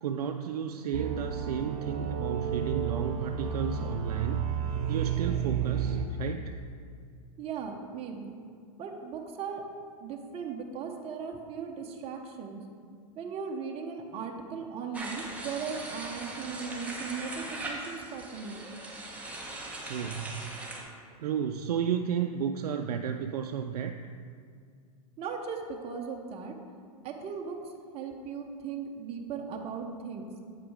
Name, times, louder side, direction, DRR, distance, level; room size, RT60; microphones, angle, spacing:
voice 1, 0.0-4.5 4.9-6.5 19.8-20.5 21.2-23.9, right 8 dB, 85° right, 5 dB, 0.4 m, -32 dB
sound 1, 0.9-6.1, right 8 dB, 70° right, 0.8 m, -32 dB
voice 2, 7.4-8.4 8.8-9.6 10.0-12.6 13.2-18.6 25.2-26.5 27.0-27.6 27.9-30.3, right 6 dB, 30° right, 2 dB, 0.8 m, -38 dB
sound 2, 14.9-20.8, right 2 dB, 5° right, 1.1 m, -40 dB
8.1 x 4.9 x 4.8 m, 2.2 s
hypercardioid pair, 120°, 20 cm